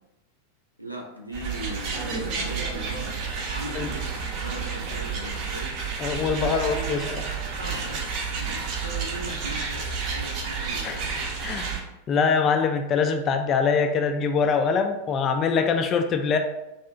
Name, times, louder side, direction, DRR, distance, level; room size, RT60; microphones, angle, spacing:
voice 1, 0.8-3.2 3.5-5.7 6.3-7.3 7.6-11.6, right 1 dB, 90° right, -1 dB, 0.6 m, -39 dB
sound 1, 1.3-11.8, right 5 dB, 40° right, 0.6 m, -31 dB
voice 2, 6.0-7.2 10.8-11.0 11.4-11.7 12.1-16.4, left 5 dB, 30° left, 5 dB, 0.3 m, -23 dB
2.8 x 2.4 x 3.4 m, 0.92 s
figure-of-eight pair, 90°, 0 cm